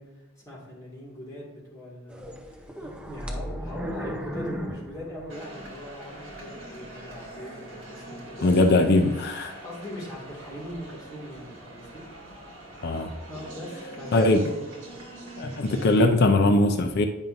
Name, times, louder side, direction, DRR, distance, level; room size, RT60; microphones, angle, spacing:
voice 1, 0.0-8.5 9.4-12.0 13.3-14.7, equal, 15° left, -6 dB, 2.1 m, -40 dB
sound 1, 2.1-5.9 6.3-6.4 7.0-7.2, equal, 5° right, 0.7 m, -36 dB
sound 2, 5.3-16.0, right 1 dB, 60° right, 2.0 m, -44 dB
voice 2, 8.4-9.5 12.8-13.1 14.1-14.4 15.4-17.1, left 2 dB, 50° left, 6 dB, 0.5 m, -20 dB
9.1 x 5.4 x 2.6 m, 1.1 s
head